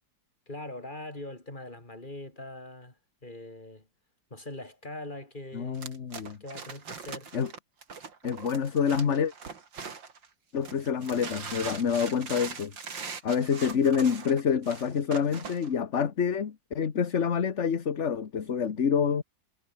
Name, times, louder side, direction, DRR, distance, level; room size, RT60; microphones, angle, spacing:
voice 1, 0.5-3.9 4.3-5.8 6.4-7.3, left 2 dB, 25° left, 4.9 m, -42 dB
voice 2, 5.5-6.4 7.3-7.5 8.2-9.3 10.5-12.7 13.2-19.2, left 7 dB, 40° left, 1.5 m, -27 dB
sound 1, 5.7-10.3 10.6-15.7, right 5 dB, 80° right, 3.4 m, -41 dB
omnidirectional pair, 2.0 m